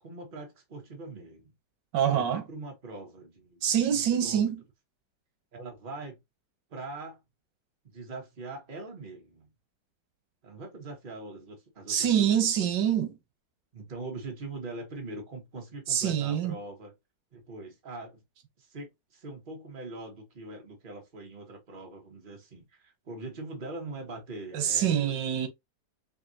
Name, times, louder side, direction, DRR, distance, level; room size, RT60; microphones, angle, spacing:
voice 1, 0.0-1.5 2.1-3.6 3.9-4.5 5.5-6.2 6.7-7.2 7.9-9.5 10.4-12.5 13.7-16.9 17.3-18.2 18.6-25.4, right 2 dB, 30° right, 1.3 m, -42 dB
voice 2, 1.9-2.4 3.6-4.6 11.9-13.2 15.9-16.5 24.5-25.5, right 9 dB, 90° right, 1.5 m, -25 dB
5.4 x 2.5 x 2.7 m
omnidirectional pair, 1.8 m